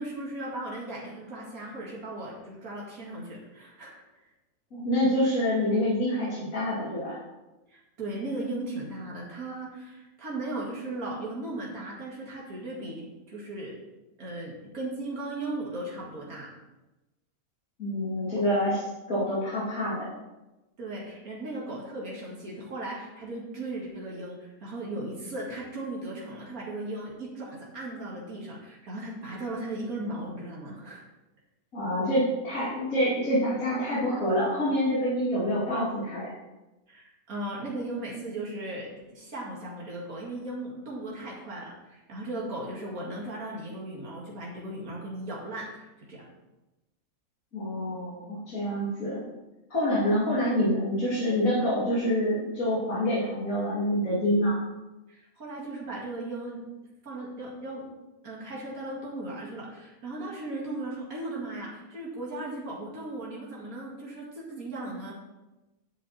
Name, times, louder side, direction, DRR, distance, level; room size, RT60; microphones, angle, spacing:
voice 1, 0.0-4.0 7.7-13.8 14.2-16.5 20.8-31.0 36.9-46.3 55.1-56.6 57.0-57.9 58.2-65.1, right 2 dB, 85° right, -4 dB, 2.7 m, -37 dB
voice 2, 4.7-7.2 17.8-20.1 31.7-36.3 47.5-49.2 49.7-54.6, equal, 75° left, -10 dB, 2.9 m, -26 dB
10.0 x 8.0 x 4.2 m, 1.1 s
omnidirectional pair, 1.5 m